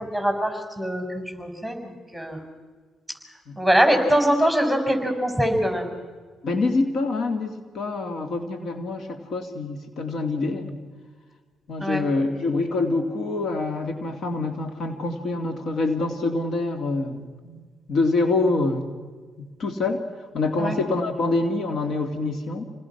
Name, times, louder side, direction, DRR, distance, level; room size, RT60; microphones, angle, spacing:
voice 1, 0.0-2.4 3.6-5.9 11.8-12.0 20.6-20.7, equal, 5° left, 4 dB, 5.9 m, -23 dB
voice 2, 6.4-10.8 11.7-18.8 19.4-20.1 20.3-22.7, left 3 dB, 60° left, 6 dB, 2.5 m, -26 dB
28.5 x 20.0 x 6.0 m, 1.5 s
cardioid pair, 90°, 0 cm